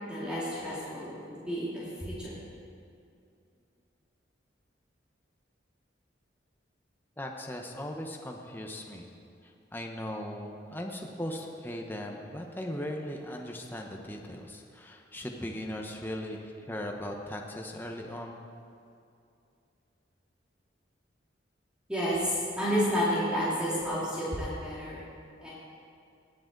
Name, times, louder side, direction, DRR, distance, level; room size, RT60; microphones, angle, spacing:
voice 1, 0.1-2.3 21.9-25.0 25.4-25.5, equal, 5° right, -9 dB, 2.2 m, -31 dB
voice 2, 7.2-9.1 9.4-18.4, left 1 dB, 10° left, 1 dB, 0.9 m, -38 dB
18.5 x 7.7 x 3.9 m, 2.5 s
head